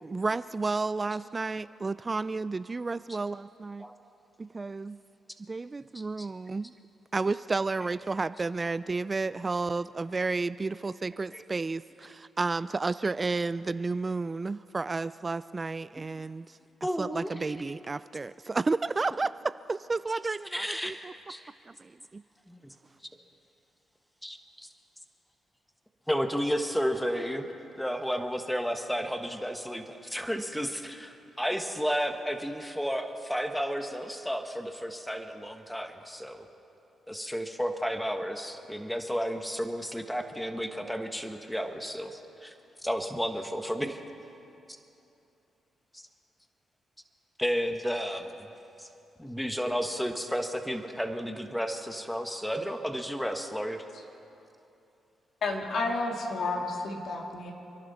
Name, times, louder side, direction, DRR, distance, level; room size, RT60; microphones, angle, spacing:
voice 1, 0.0-3.9 4.4-5.0 5.5-6.7 7.1-16.6 17.0-21.1 21.7-22.2, right 3 dB, 35° right, 15 dB, 0.3 m, -32 dB
voice 2, 5.9-6.3 11.3-11.4 16.8-17.3 20.5-21.4 22.5-22.7 24.2-24.7 26.1-27.5 27.8-36.4 37.1-42.5 42.8-44.0 45.9-46.0 47.4-48.3 48.8-48.9 49.2-53.8, equal, 5° left, 6 dB, 1.5 m, -32 dB
voice 3, 55.4-57.5, left 3 dB, 65° left, 1 dB, 2.3 m, -31 dB
29.5 x 11.0 x 4.2 m, 2.8 s
supercardioid pair, 55°, 0 cm